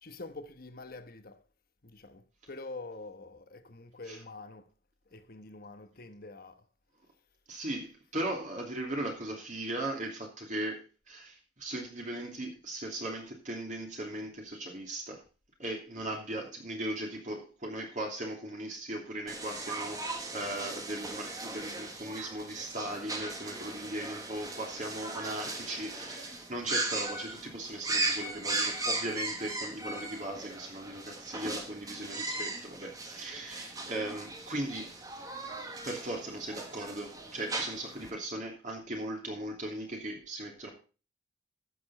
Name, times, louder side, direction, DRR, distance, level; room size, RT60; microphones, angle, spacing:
voice 1, 0.0-1.4 1.8-4.7 5.1-6.7, left 2 dB, 50° left, 1.1 m, -46 dB
voice 2, 7.5-10.8 11.1-15.2 15.6-34.9 35.8-40.7, right 1 dB, 40° right, 2.9 m, -38 dB
sound 1, 19.3-38.1, right 2 dB, 20° right, 1.6 m, -38 dB
14.0 x 7.1 x 4.2 m
head